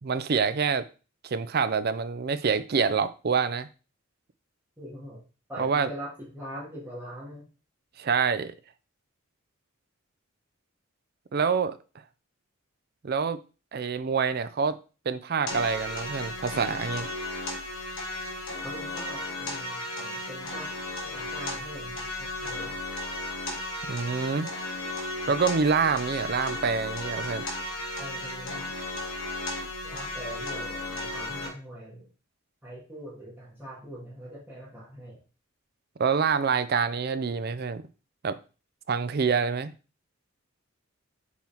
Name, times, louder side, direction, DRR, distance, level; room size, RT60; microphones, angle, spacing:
voice 1, 0.0-0.8 1.2-3.7 5.6-5.9 8.0-8.5 11.3-11.8 13.0-13.4 13.7-14.8 15.1-17.1 23.8-24.5 25.3-27.5 36.0-37.8 38.2-38.4 38.9-39.7, right 5 dB, 50° right, 0.5 m, -26 dB
voice 2, 4.8-5.2 5.5-7.5 18.6-20.7 21.0-22.8 28.0-28.8 29.8-32.1 32.6-35.2, equal, 10° right, 2.2 m, -42 dB
sound 1, 15.5-31.5, left 2 dB, 85° left, 2.6 m, -35 dB
5.6 x 4.5 x 4.4 m
head